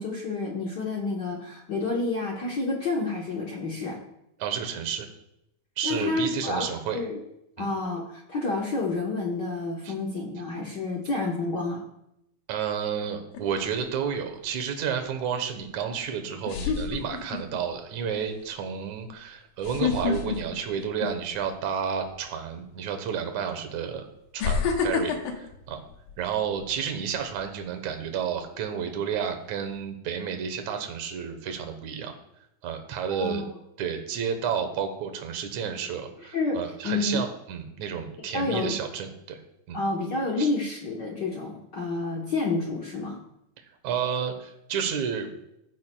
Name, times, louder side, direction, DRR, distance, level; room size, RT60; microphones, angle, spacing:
voice 1, 0.0-4.0 5.8-7.2 7.6-11.8 33.1-33.4 36.2-36.6 36.8-37.2 38.3-38.8 39.7-43.2, left 3 dB, 70° left, -2 dB, 1.0 m, -29 dB
voice 2, 4.4-5.1 5.8-7.0 7.6-7.7 9.8-9.9 12.5-24.1 24.3-25.8 26.2-32.1 32.6-33.4 33.8-39.4 39.7-39.8 40.4-40.5 43.8-45.3, right 7 dB, 70° right, 6 dB, 2.4 m, -31 dB
sound 1, 13.3-13.8 15.7-15.8 16.5-17.6 18.0-18.3 19.6-21.5 21.8-22.1 23.1-23.2 24.4-26.7 27.1-27.4, left 6 dB, 90° left, 2.6 m, -28 dB
15.0 x 10.5 x 2.2 m, 0.84 s
omnidirectional pair, 3.5 m